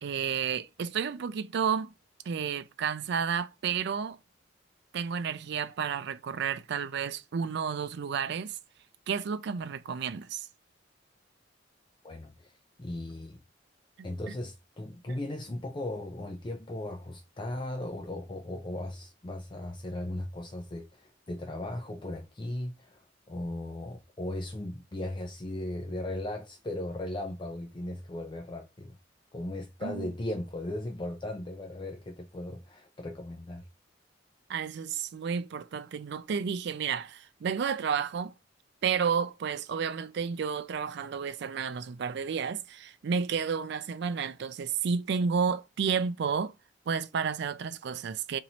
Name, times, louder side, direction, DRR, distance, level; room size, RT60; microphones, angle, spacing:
voice 1, 0.0-1.9 2.3-4.2 4.9-8.6 9.1-10.5 15.1-15.2 29.8-30.1 34.5-38.3 38.8-46.5 46.9-48.4, right 6 dB, 65° right, 0.4 m, -31 dB
voice 2, 12.0-12.5 12.8-13.4 14.0-28.9 29.3-33.6, left 1 dB, 25° left, 0.5 m, -37 dB
2.9 x 2.8 x 4.1 m
head